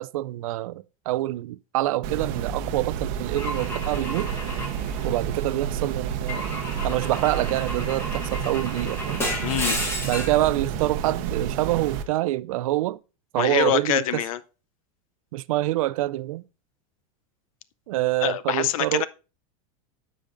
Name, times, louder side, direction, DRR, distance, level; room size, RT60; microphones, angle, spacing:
voice 1, 0.0-4.3 5.0-9.2 10.0-13.0 13.3-14.2 15.3-16.4 17.9-19.1, right 16 dB, 80° right, 0.4 m, -26 dB
sound 1, 2.0-12.0, right 8 dB, 45° right, 0.8 m, -30 dB
Car / Engine / Glass, 3.4-5.6 6.3-10.5, left 1 dB, 15° left, 1.5 m, -33 dB
voice 2, 9.4-9.8 13.4-14.4 18.2-19.1, left 11 dB, 80° left, 0.6 m, -25 dB
14.5 x 5.1 x 2.5 m
supercardioid pair, 165°, 17 cm